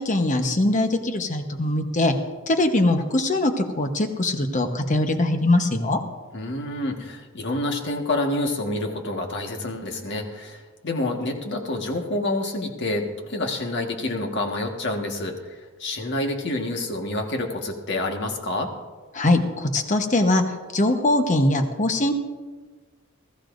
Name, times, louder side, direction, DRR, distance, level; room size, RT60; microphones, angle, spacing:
voice 1, 0.0-2.1 2.5-6.0 19.1-20.4 20.7-22.1, left 2 dB, 35° left, 6 dB, 1.1 m, -22 dB
voice 2, 6.3-18.7, left 2 dB, 55° left, 3 dB, 1.6 m, -28 dB
20.5 x 14.5 x 2.6 m, 1.3 s
head